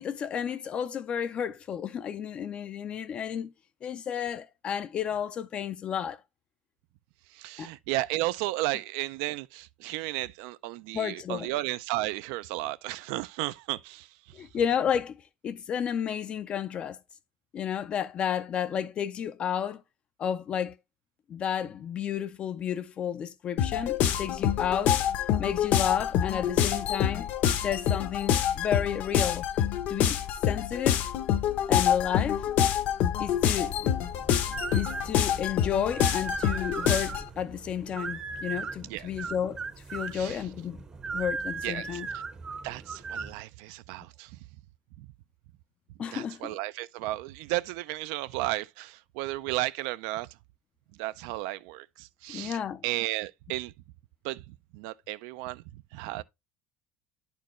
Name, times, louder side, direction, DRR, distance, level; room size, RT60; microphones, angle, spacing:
voice 1, 0.0-3.5 3.8-6.2 7.6-7.7 10.9-11.5 14.3-15.2 15.4-17.0 17.5-19.8 20.2-20.8 21.3-25.0 25.4-27.3 27.6-29.5 29.9-31.0 31.7-32.5 33.2-33.8 34.7-39.6 39.9-40.8 41.1-42.1 46.0-46.6 52.3-52.8, left 8 dB, 30° left, 0.4 m, -32 dB
voice 2, 7.3-14.1 14.3-14.4 38.9-39.1 40.1-40.4 41.6-42.2 42.6-44.3 45.0-45.1 46.1-50.3 51.0-52.6 52.8-53.7 54.2-55.6 55.9-56.2, right 17 dB, 70° right, 0.3 m, -34 dB
sound 1, 23.6-37.3, left 9 dB, 45° left, 0.7 m, -26 dB
sound 2, 33.2-43.3, right 4 dB, 15° right, 0.6 m, -38 dB
10.5 x 4.4 x 3.0 m
cardioid pair, 175°, 4 cm